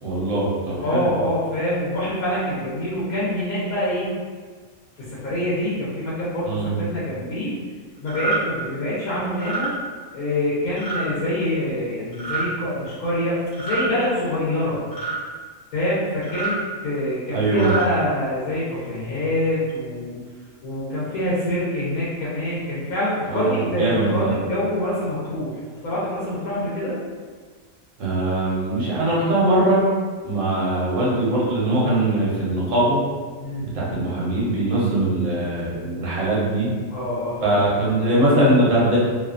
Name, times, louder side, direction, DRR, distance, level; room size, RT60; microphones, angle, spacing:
voice 1, 0.0-1.0 6.5-6.8 17.3-17.7 23.3-24.3 28.0-29.9 30.2-33.0 33.6-36.7 37.4-39.0, right 1 dB, 65° right, -7 dB, 1.0 m, -21 dB
voice 2, 0.8-4.1 5.0-7.5 8.0-9.7 10.1-14.8 15.7-20.2 20.6-25.6 25.8-27.0 33.4-34.0 36.9-37.7, left 1 dB, 80° left, -9 dB, 1.2 m, -25 dB
sound 1, 8.1-8.4 9.3-9.7 10.8-11.1 12.1-12.5 13.5-13.9 14.9-15.2 16.2-16.6 17.4-17.9, right 4 dB, 60° left, 1.1 m, -27 dB
2.7 x 2.2 x 2.4 m, 1.5 s
omnidirectional pair, 1.5 m